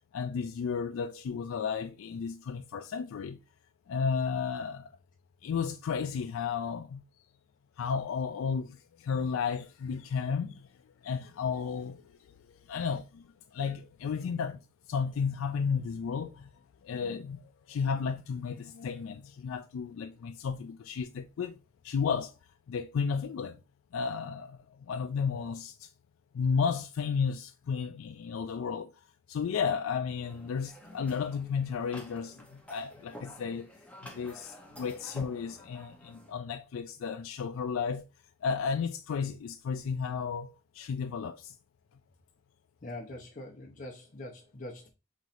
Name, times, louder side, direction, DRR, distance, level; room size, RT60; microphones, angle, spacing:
voice 1, 0.1-3.4 3.9-4.9 5.4-7.0 7.8-10.7 11.0-12.0 12.7-13.3 13.5-14.6 14.9-16.5 16.8-21.6 21.8-22.3 22.7-23.6 23.9-24.6 24.9-25.9 26.3-28.9 29.3-33.7 34.0-38.0 38.4-41.5, left 6 dB, 75° left, 0.3 m, -33 dB
sound 1, 30.2-36.3, equal, 5° left, 0.8 m, -50 dB
voice 2, 42.8-44.9, left 1 dB, 40° left, 0.7 m, -43 dB
5.5 x 3.1 x 2.5 m
head